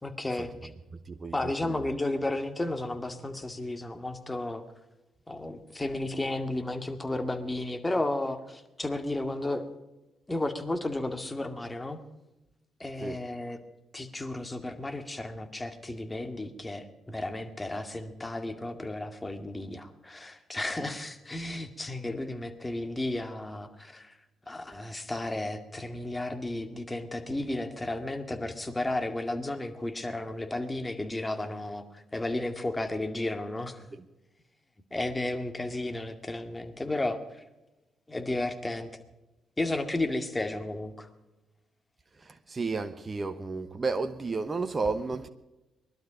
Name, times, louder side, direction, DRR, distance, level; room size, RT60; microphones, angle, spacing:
voice 1, 0.0-0.7 1.3-4.6 5.3-9.6 10.3-12.0 12.8-13.6 13.9-24.2 24.5-33.9 34.9-37.4 38.1-39.0 39.6-41.1, left 2 dB, 20° left, 2.2 m, -33 dB
voice 2, 1.1-1.8 13.0-13.2 20.8-20.9 42.1-45.3, right 4 dB, 35° right, 1.1 m, -32 dB
20.5 x 12.0 x 5.2 m
hypercardioid pair, 45°, 0 cm